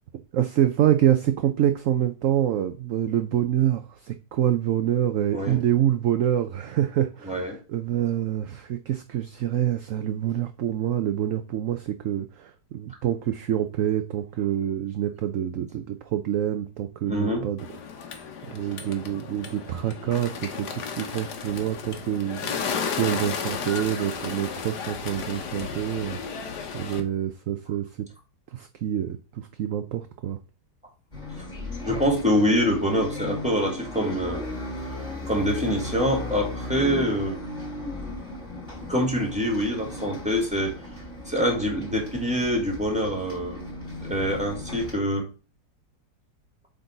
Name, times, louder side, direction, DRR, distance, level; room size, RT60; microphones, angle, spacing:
voice 1, 0.3-17.6 18.5-26.4 26.7-28.1 28.5-30.4, right 11 dB, 65° right, 0.8 m, -26 dB
voice 2, 7.2-7.6 17.1-17.4 31.8-34.4 35.3-37.4 38.9-40.7 41.3-43.6 44.0-45.3, equal, 5° right, 2.5 m, -25 dB
Bird, 17.6-27.0, left 6 dB, 70° left, 1.6 m, -33 dB
Bus, 31.1-44.9, left 2 dB, 15° left, 3.6 m, -36 dB
8.1 x 4.0 x 3.9 m
omnidirectional pair, 1.9 m